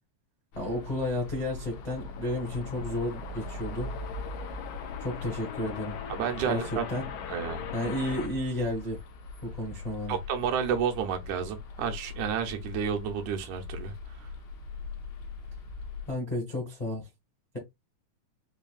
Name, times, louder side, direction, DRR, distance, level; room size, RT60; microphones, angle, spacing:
sound 1, 0.5-16.1, left 3 dB, 75° left, 2.0 m, -41 dB
voice 1, 0.6-3.9 5.0-5.9 6.5-6.6 6.9-7.1 7.7-9.0 9.4-10.2 16.1-17.1, left 1 dB, 35° left, 0.6 m, -32 dB
sound 2, 1.2-9.4, left 8 dB, 90° left, 2.2 m, -41 dB
voice 2, 6.1-6.9 7.3-7.6 10.1-13.9 14.2-14.3, right 8 dB, 85° right, 2.1 m, -31 dB
5.6 x 2.6 x 2.3 m
omnidirectional pair, 3.3 m